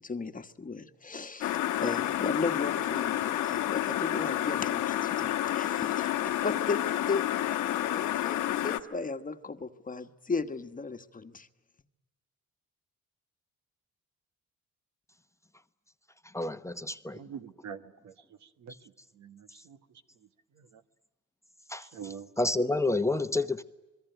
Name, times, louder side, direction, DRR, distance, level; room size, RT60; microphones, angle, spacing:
voice 1, 0.0-11.5, left 4 dB, 25° left, 8 dB, 1.3 m, -36 dB
sound 1, 1.4-8.8, left 12 dB, 85° left, 1.4 m, -30 dB
voice 2, 16.3-17.2 21.7-21.8 22.4-23.6, left 2 dB, 10° left, 9 dB, 1.0 m, -29 dB
voice 3, 17.1-18.1 18.6-18.7 19.2-19.8 20.6-20.7 21.8-22.3, right 7 dB, 65° right, 10 dB, 1.6 m, -44 dB
26.5 x 22.0 x 9.2 m, 1.1 s
cardioid pair, 90°, 30 cm